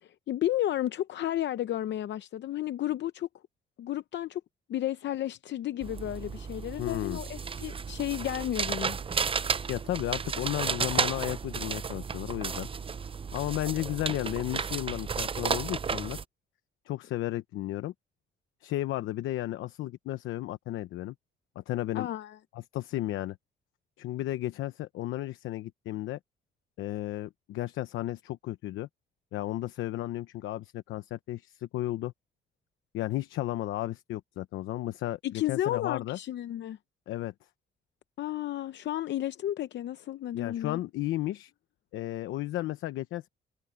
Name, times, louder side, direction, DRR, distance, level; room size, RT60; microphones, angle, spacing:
voice 1, 0.0-3.3 3.8-4.4 4.7-9.0 21.9-22.4 35.2-36.8 38.2-40.8, left 13 dB, 65° left, 0.7 m, -32 dB
sound 1, 5.8-16.2, right 6 dB, 25° right, 0.6 m, -33 dB
voice 2, 6.8-7.2 9.7-12.7 13.3-16.2 16.8-17.9 18.6-21.1 21.5-22.1 22.5-23.4 24.0-26.2 26.8-28.9 29.3-32.1 32.9-36.2 37.1-37.3 40.3-41.5 41.9-43.3, left 15 dB, 90° left, 0.9 m, -33 dB
cardioid pair, 90°, 20 cm